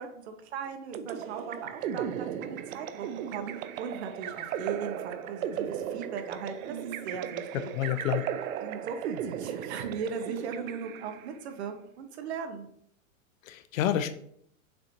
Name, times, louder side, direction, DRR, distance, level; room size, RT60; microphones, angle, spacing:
voice 1, 0.0-6.8 7.0-7.7 8.6-12.7, right 6 dB, 55° right, 7 dB, 0.8 m, -38 dB
sound 1, 0.9-11.4, right 9 dB, 90° right, 0.6 m, -36 dB
voice 2, 7.8-8.2 13.5-14.1, left 11 dB, 75° left, 12 dB, 0.6 m, -28 dB
6.8 x 2.9 x 2.6 m, 0.68 s
supercardioid pair, 175°, 40 cm